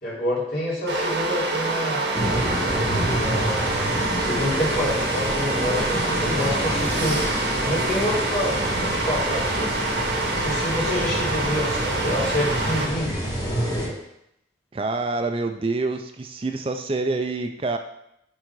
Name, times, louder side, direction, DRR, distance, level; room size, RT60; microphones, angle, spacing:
voice 1, 0.0-2.0 3.1-9.7 10.3-13.1, left 1 dB, 55° left, -6 dB, 3.0 m, -28 dB
sound 1, 0.9-12.9, right 2 dB, 80° right, 1.4 m, -26 dB
sound 2, 2.1-13.9, equal, 25° left, 2.3 m, -28 dB
voice 2, 14.7-17.8, right 3 dB, 30° right, 6 dB, 0.4 m, -26 dB
9.3 x 3.8 x 4.7 m, 0.80 s
head